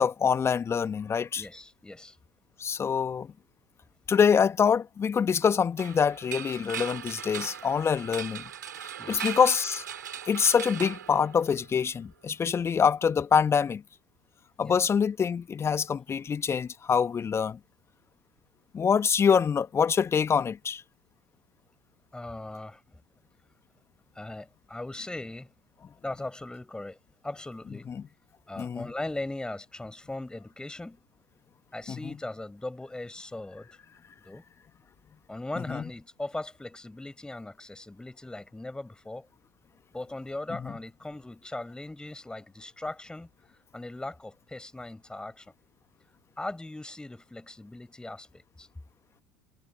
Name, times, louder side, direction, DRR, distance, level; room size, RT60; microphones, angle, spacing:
voice 1, 0.0-1.4 2.6-3.3 4.1-8.4 9.1-9.8 10.3-13.8 14.6-17.6 18.7-20.8 27.9-28.0 28.6-28.9 31.9-32.0 35.7-35.8 40.6-40.7, left 6 dB, 25° left, 1.7 m, -25 dB
voice 2, 1.3-2.2 9.0-9.3 14.6-14.8 22.1-22.8 24.2-25.5 26.0-27.0 27.2-27.9 28.5-31.0 31.7-33.7 34.3-34.4 35.3-39.3 39.9-43.3 43.7-45.5 46.4-48.7, left 2 dB, 10° left, 7.1 m, -39 dB
sound 1, 5.8-11.8, right 9 dB, 75° right, 5.7 m, -39 dB
figure-of-eight pair, 70°, 10 cm